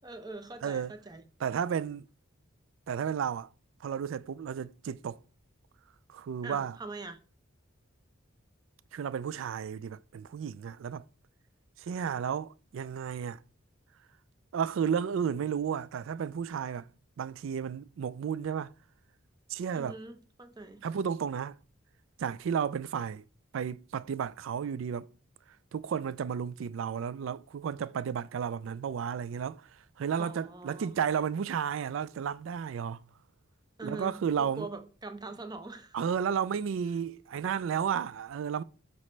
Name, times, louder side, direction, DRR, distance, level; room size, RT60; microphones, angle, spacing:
voice 1, 0.0-1.3 6.4-7.2 19.7-20.8 30.2-30.9 33.8-36.1, right 2 dB, 20° right, 0.7 m, -43 dB
voice 2, 0.6-0.9 1.4-2.1 2.9-3.5 3.8-5.2 6.1-6.8 8.9-11.1 11.8-13.4 14.5-16.9 17.2-18.7 19.5-20.0 20.8-21.6 22.2-23.2 23.5-25.1 25.7-29.7 30.0-33.0 33.8-34.7 35.9-38.6, right 7 dB, 65° right, 0.3 m, -33 dB
12.5 x 4.2 x 3.2 m
head